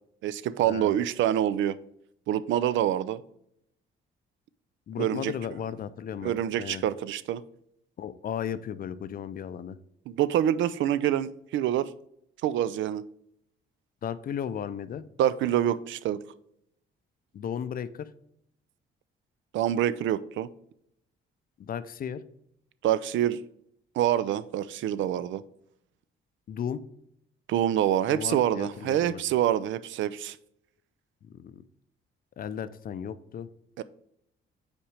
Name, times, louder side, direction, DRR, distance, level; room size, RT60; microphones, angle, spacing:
voice 1, 0.2-1.8 2.3-3.2 5.0-5.3 6.2-7.4 10.1-11.9 12.4-13.0 15.2-16.2 19.5-20.5 22.8-23.4 24.0-25.4 27.5-30.4 33.8-33.9, right 11 dB, 75° right, 16 dB, 0.4 m, -26 dB
voice 2, 4.9-6.8 8.0-9.8 14.0-15.0 17.3-18.1 21.6-22.2 26.5-26.8 28.1-29.2 31.3-31.6 32.4-33.5, left 8 dB, 45° left, 14 dB, 0.4 m, -35 dB
5.7 x 4.3 x 4.8 m, 0.74 s
cardioid pair, 90°, 20 cm